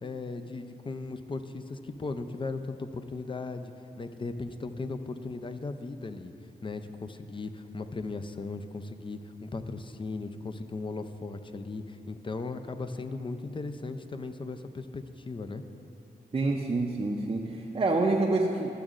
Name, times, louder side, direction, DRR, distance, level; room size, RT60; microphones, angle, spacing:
voice 1, 0.0-6.3 6.6-15.6, left 3 dB, 30° left, 9 dB, 0.5 m, -37 dB
voice 2, 16.3-18.7, right 2 dB, 30° right, 0 dB, 0.5 m, -27 dB
12.5 x 6.1 x 2.5 m, 2.8 s
cardioid pair, 55°, 17 cm